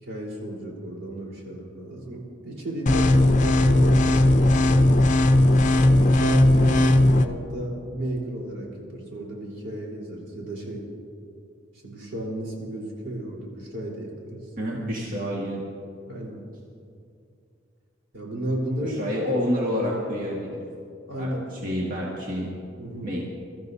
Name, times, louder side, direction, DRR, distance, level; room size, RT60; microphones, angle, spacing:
voice 1, 0.0-4.9 5.7-10.8 11.8-14.5 16.1-16.4 18.1-19.2 21.1-21.4 22.8-23.1, right 1 dB, 80° right, -3 dB, 4.0 m, -33 dB
sound 1, 2.9-7.2, left 1 dB, 40° left, 0.6 m, -18 dB
voice 2, 14.6-15.6 18.8-20.4 21.2-22.5 23.0-23.2, equal, 45° right, -5 dB, 1.8 m, -28 dB
24.0 x 13.5 x 2.7 m, 2.4 s
head